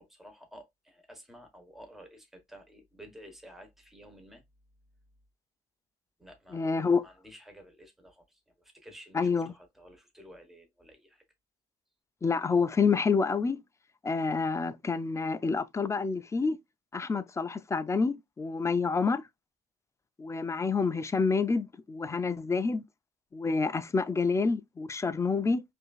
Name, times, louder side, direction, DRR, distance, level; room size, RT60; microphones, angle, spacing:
voice 1, 0.0-4.4 6.2-11.2, equal, ahead, 1.1 m, -52 dB
voice 2, 6.5-7.0 9.1-9.5 12.2-13.6 14.0-16.6 16.9-19.2 20.2-22.8 23.3-25.6, left 4 dB, 15° left, 0.4 m, -28 dB
4.8 x 2.6 x 2.3 m
cardioid pair, 110°, 17 cm